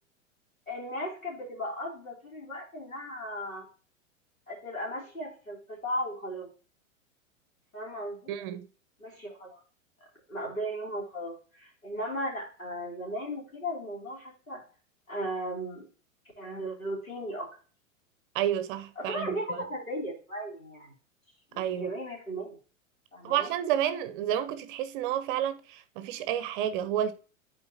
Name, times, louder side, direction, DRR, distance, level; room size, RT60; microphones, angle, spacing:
voice 1, 0.7-3.6 4.5-6.5 7.7-8.3 9.0-9.6 10.3-14.6 15.1-15.9 16.4-17.5 19.0-20.9 21.5-22.6 23.1-23.5, equal, 90° left, 3.2 m, -36 dB
voice 2, 8.3-8.7 18.3-19.6 21.6-21.9 23.2-27.1, right 10 dB, 40° right, 0.7 m, -30 dB
10.5 x 4.5 x 2.8 m
figure-of-eight pair, 100°, 40 cm